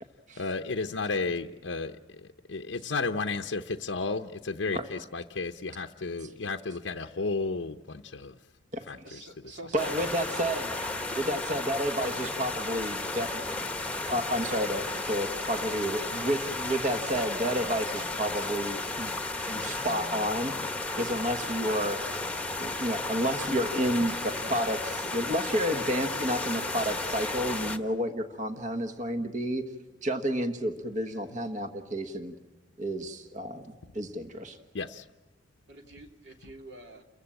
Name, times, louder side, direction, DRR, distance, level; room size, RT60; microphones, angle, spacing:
voice 1, 0.4-2.0 2.5-8.4 8.9-9.0 34.7-35.0, left 3 dB, 85° left, 3 dB, 0.7 m, -32 dB
voice 2, 9.0-10.3 11.1-12.4 15.6-15.7 35.7-37.0, right 1 dB, 70° right, 3 dB, 2.8 m, -47 dB
voice 3, 9.7-10.7 11.1-19.1 19.5-20.5 21.0-22.0 22.5-29.6 30.0-32.3 32.8-34.6, equal, 40° right, 7 dB, 1.3 m, -30 dB
sound 1, 9.8-27.8, left 2 dB, 5° left, 1.1 m, -34 dB
29.0 x 15.0 x 8.8 m, 1.1 s
head